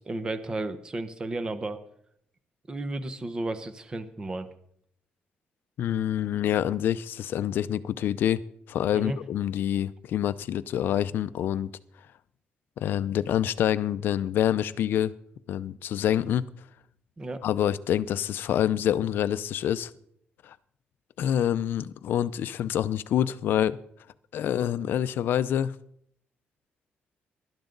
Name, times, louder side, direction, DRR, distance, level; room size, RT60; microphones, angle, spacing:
voice 1, 0.0-1.8 2.7-4.5 8.9-9.2 17.2-17.4, right 2 dB, 20° right, 1.0 m, -33 dB
voice 2, 5.8-11.7 12.8-15.1 15.5-16.5 17.4-19.9 20.4-20.6 21.2-23.8 24.3-25.8, left 10 dB, 65° left, 0.6 m, -26 dB
19.5 x 12.0 x 3.9 m
cardioid pair, 160°, 4 cm